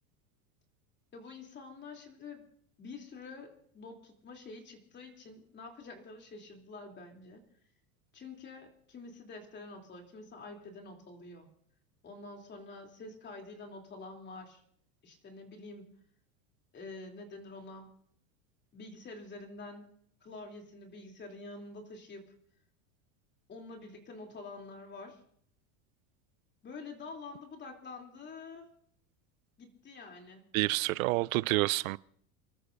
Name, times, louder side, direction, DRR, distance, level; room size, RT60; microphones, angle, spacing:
voice 1, 1.1-2.4 2.8-7.4 8.1-11.5 12.0-14.6 15.0-15.9 16.7-18.0 18.7-19.9 20.2-22.3 23.5-25.2 26.6-28.7 29.6-30.5, left 3 dB, 25° left, 3.2 m, -47 dB
voice 2, 30.5-32.0, right 21 dB, 80° right, 0.6 m, -28 dB
29.5 x 13.5 x 2.6 m
supercardioid pair, 130°, 40 cm